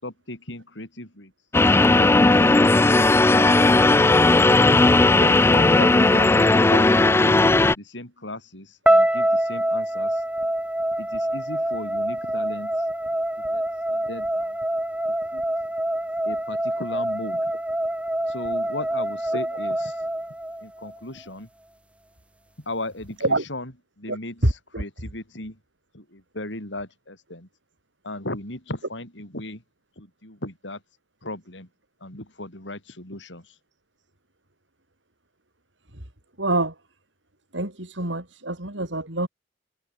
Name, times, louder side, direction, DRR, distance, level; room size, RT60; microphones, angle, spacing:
voice 1, 0.0-1.3 4.5-7.4 7.8-10.2 11.0-12.9 13.5-14.6 15.3-15.4 16.3-17.5 18.3-20.1 20.6-21.5 22.7-25.6 25.9-27.5 28.0-29.6 30.0-30.8 31.2-31.7 32.0-33.6, left 1 dB, 75° left, 7.2 m, -36 dB
sound 1, 1.5-7.7, left 2 dB, 15° left, 0.4 m, -16 dB
sound 2, 8.9-21.0, right 1 dB, 5° right, 2.0 m, -25 dB
voice 2, 24.1-24.8 35.9-36.1 36.4-36.8 37.5-39.3, right 2 dB, 80° right, 6.4 m, -26 dB
head